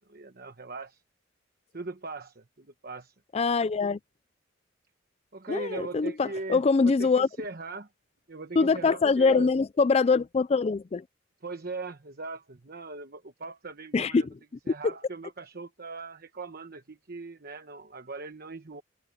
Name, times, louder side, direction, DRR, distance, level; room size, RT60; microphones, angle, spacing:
voice 1, 0.1-1.0 1.7-3.1 5.3-7.9 8.3-9.5 11.4-14.3 14.7-18.8, right 3 dB, 50° right, 1.1 m, -40 dB
voice 2, 3.3-4.0 5.5-7.3 8.6-11.0 13.9-14.3, left 4 dB, 30° left, 0.4 m, -23 dB
head